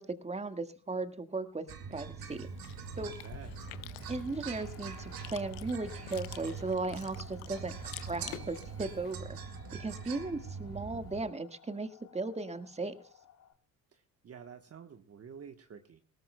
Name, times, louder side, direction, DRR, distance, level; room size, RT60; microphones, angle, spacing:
voice 1, 0.0-1.6 1.9-2.5 3.0-3.1 4.1-7.7 8.1-9.4 9.8-13.0, right 3 dB, 15° right, 9 dB, 1.7 m, -36 dB
sound 1, 1.7-11.2, right 6 dB, 55° right, 2.2 m, -43 dB
Chewing mastication, 2.2-9.1, left 15 dB, 75° left, 1.0 m, -49 dB
voice 2, 2.9-3.8 13.9-16.0, right 7 dB, 35° right, 7 dB, 1.2 m, -50 dB
sound 2, 3.1-13.5, left 8 dB, 50° left, 2.2 m, -57 dB
19.5 x 18.0 x 2.3 m, 0.41 s
hypercardioid pair, 50°, 43 cm